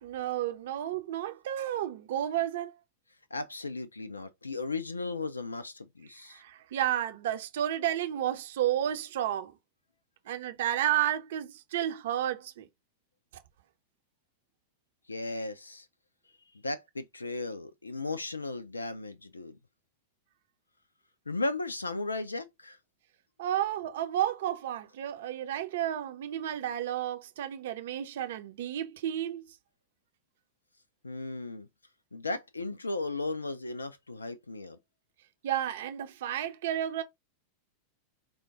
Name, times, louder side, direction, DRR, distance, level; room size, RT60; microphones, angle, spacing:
voice 1, 0.0-2.7 6.3-9.5 10.3-12.7 23.4-29.5 35.4-37.0, right 11 dB, 55° right, 0.7 m, -31 dB
voice 2, 3.3-6.4 15.1-15.9 16.6-19.6 21.3-22.8 31.0-31.7 32.1-34.8, left 2 dB, 80° left, 0.4 m, -36 dB
4.9 x 2.3 x 3.7 m
figure-of-eight pair, 90°, 0 cm